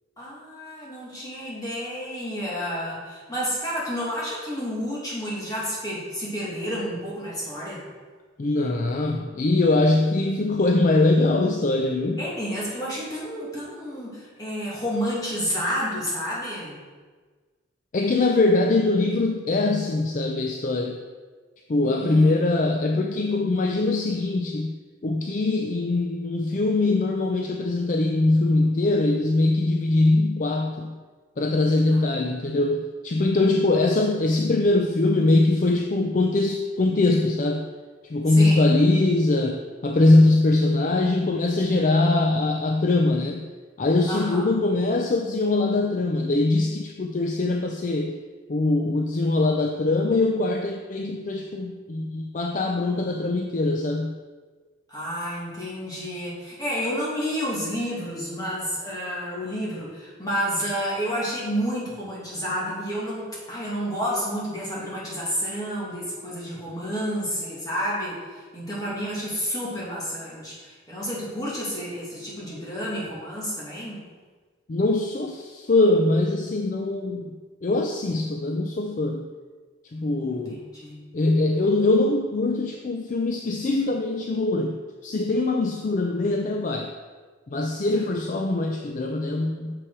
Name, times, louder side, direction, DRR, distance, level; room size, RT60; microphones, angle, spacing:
voice 1, 0.2-7.8 12.2-16.8 21.8-22.5 31.9-32.0 38.3-38.7 44.1-44.4 54.9-74.0 80.3-81.0 88.0-88.1, equal, 20° left, -6 dB, 2.2 m, -30 dB
voice 2, 8.4-12.2 17.9-21.0 21.7-24.7 25.0-30.9 31.4-37.6 38.0-43.4 43.8-48.2 48.5-54.1 74.7-79.3 79.9-80.6 81.1-84.8 85.0-86.9 87.5-89.7, left 2 dB, 40° left, 3 dB, 0.4 m, -22 dB
6.9 x 5.7 x 4.8 m, 1.4 s
head